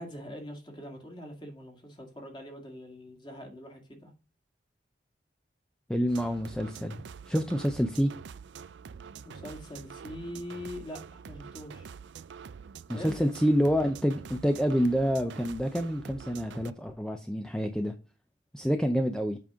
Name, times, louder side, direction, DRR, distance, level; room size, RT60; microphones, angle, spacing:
voice 1, 0.0-4.1 9.2-11.9 12.9-13.3, left 1 dB, 25° left, 2.1 m, -43 dB
voice 2, 5.9-8.1 12.9-17.9 18.5-19.4, equal, 5° left, 0.5 m, -28 dB
sound 1, 6.1-16.7, right 6 dB, 75° right, 0.4 m, -46 dB
7.7 x 5.3 x 3.6 m
head